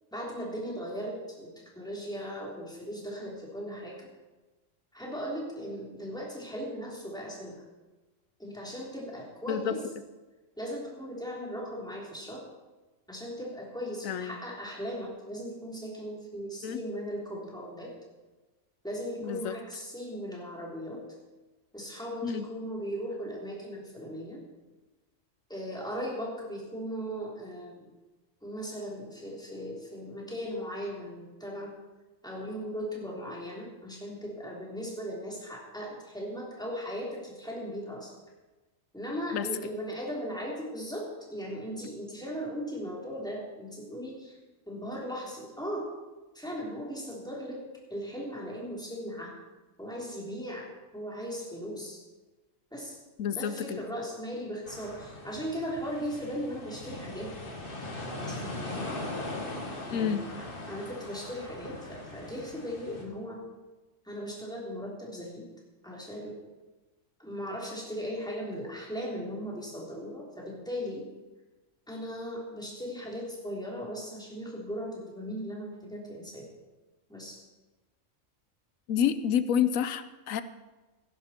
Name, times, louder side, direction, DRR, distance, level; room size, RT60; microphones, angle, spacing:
voice 1, 0.1-4.1 4.9-7.6 8.4-9.8 10.6-12.4 13.1-17.9 18.8-21.0 21.7-24.4 25.5-27.9 28.4-31.7 32.2-38.1 38.9-44.4 44.7-45.9 46.3-47.6 47.9-49.4 49.8-52.0 52.7-53.0 53.3-57.4 58.2-58.9 59.8-60.2 60.7-63.4 64.0-65.4 65.8-66.4 67.2-71.1 71.9-76.5 77.1-77.4, equal, 5° left, -3 dB, 3.4 m, -38 dB
voice 2, 14.0-14.4 16.6-16.8 19.2-19.5 22.2-22.5 39.3-39.5 53.2-53.8 59.9-60.3 78.9-80.4, left 8 dB, 90° left, 13 dB, 1.1 m, -29 dB
sound 1, 54.7-63.0, left 2 dB, 45° left, 2.0 m, -40 dB
16.0 x 11.0 x 4.4 m, 1.2 s
omnidirectional pair, 1.3 m